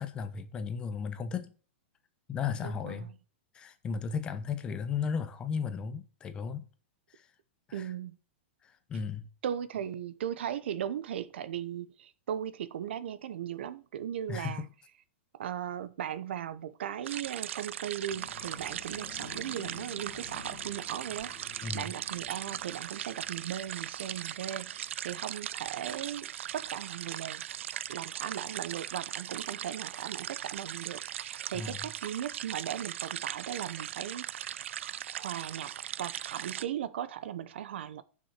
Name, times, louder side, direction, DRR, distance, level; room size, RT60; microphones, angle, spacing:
voice 1, 0.0-1.6 2.3-3.1 3.5-6.7 7.1-7.3 7.7-7.9 8.6-9.3 14.3-14.7 21.6-21.9 31.5-31.8, left 6 dB, 15° left, 0.6 m, -35 dB
voice 2, 2.6-3.1 7.7-8.2 9.4-14.7 15.3-27.4 27.9-34.6 35.1-35.7 36.0-38.0, right 10 dB, 65° right, 0.8 m, -38 dB
sound 1, 17.0-36.7, right 11 dB, 85° right, 0.4 m, -39 dB
sound 2, 18.1-29.0 29.5-29.9 30.3-30.4, left 8 dB, 35° left, 1.7 m, -53 dB
7.4 x 6.0 x 6.6 m
supercardioid pair, 175°, 7 cm